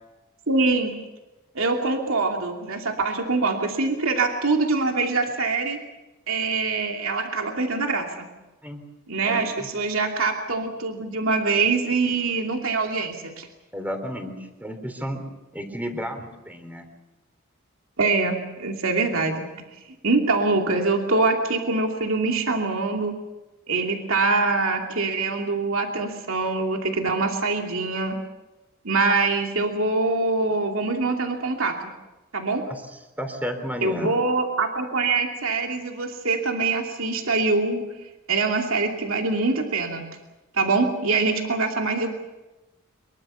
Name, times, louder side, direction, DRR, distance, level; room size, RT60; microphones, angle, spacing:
voice 1, 0.5-0.9 1.5-5.8 6.3-8.3 9.1-13.5 18.0-19.5 20.0-23.1 23.7-28.1 28.8-31.8 32.3-32.6 33.8-37.8 38.3-40.0 40.5-42.1, right 3 dB, 70° right, 2 dB, 2.8 m, -24 dB
voice 2, 9.2-9.7 13.7-15.2 15.5-16.9 32.7-32.8 33.2-34.2, equal, 10° right, 7 dB, 3.6 m, -32 dB
24.0 x 22.5 x 7.0 m, 1.0 s
head